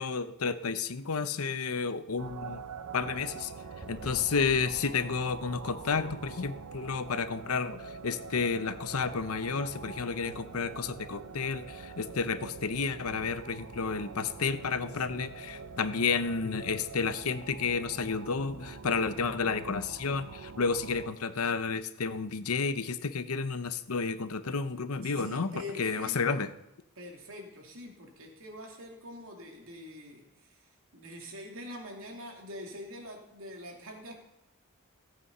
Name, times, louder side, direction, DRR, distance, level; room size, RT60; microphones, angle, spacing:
voice 1, 0.0-2.6 2.9-3.5 3.9-25.5 25.8-26.5, left 5 dB, 80° left, 12 dB, 0.8 m, -31 dB
sound 1, 2.2-21.1, right 5 dB, 90° right, 0.6 m, -45 dB
sound 2, 3.8-6.5, equal, 5° right, 0.5 m, -50 dB
voice 2, 25.0-26.5 27.0-34.1, left 1 dB, 65° right, 1 dB, 2.8 m, -45 dB
16.0 x 8.4 x 5.5 m, 0.86 s
head